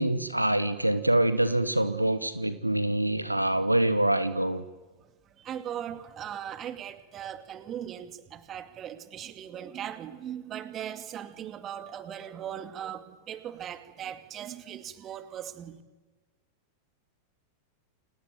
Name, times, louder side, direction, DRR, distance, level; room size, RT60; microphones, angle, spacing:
voice 1, 0.0-4.6, right 1 dB, 85° right, 13 dB, 1.2 m, -25 dB
voice 2, 5.3-15.8, right 10 dB, 30° right, 10 dB, 2.3 m, -39 dB
29.0 x 19.0 x 9.2 m, 1.3 s
figure-of-eight pair, 90°, 0 cm